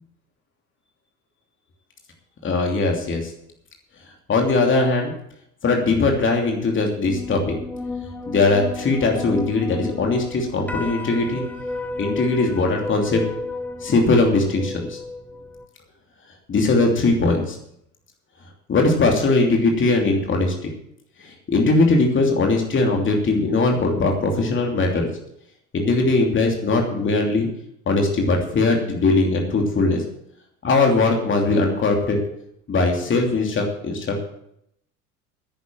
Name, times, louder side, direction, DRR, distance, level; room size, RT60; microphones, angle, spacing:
voice 1, 2.4-3.3 4.3-5.1 5.6-7.6 8.3-11.4 12.0-13.2 13.8-15.0 16.5-17.6 18.7-20.7 21.2-25.1 25.7-27.5 27.9-30.0 30.6-32.2 32.7-34.3, left 3 dB, 25° left, 2 dB, 2.9 m, -20 dB
sound 1, 7.0-15.7, left 3 dB, 5° left, 1.1 m, -33 dB
10.0 x 9.8 x 7.5 m, 0.74 s
figure-of-eight pair, 70°, 45 cm